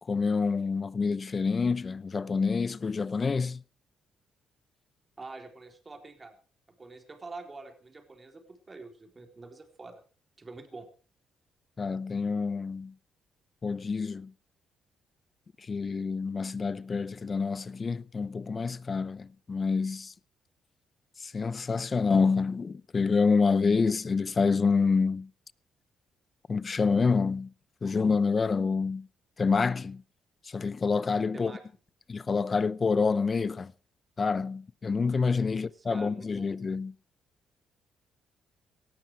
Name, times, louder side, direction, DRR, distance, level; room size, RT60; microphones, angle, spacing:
voice 1, 0.1-3.6 11.8-12.9 13.6-14.3 15.6-20.1 21.2-25.3 26.5-27.5 27.8-29.1 29.4-30.0 30.4-31.5 32.1-33.7 34.2-36.9, left 4 dB, 35° left, 0.7 m, -27 dB
voice 2, 5.2-6.4 6.8-10.0 10.4-10.9 31.3-31.6 35.5-35.6 35.9-36.5, right 3 dB, 25° right, 4.0 m, -46 dB
18.0 x 13.5 x 4.7 m
cardioid pair, 90°, 0 cm